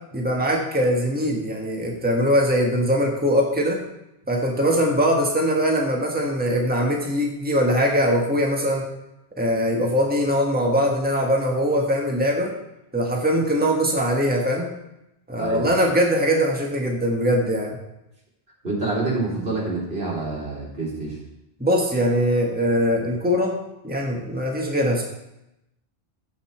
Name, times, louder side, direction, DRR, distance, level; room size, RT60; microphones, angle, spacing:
voice 1, 0.1-3.8 4.3-8.8 9.4-12.5 12.9-14.7 15.3-17.8 21.6-23.5 23.8-25.0, equal, 10° right, 0 dB, 1.5 m, -21 dB
voice 2, 18.6-21.2, right 3 dB, 80° right, -5 dB, 3.6 m, -27 dB
16.0 x 5.5 x 4.5 m, 0.88 s
omnidirectional pair, 1.0 m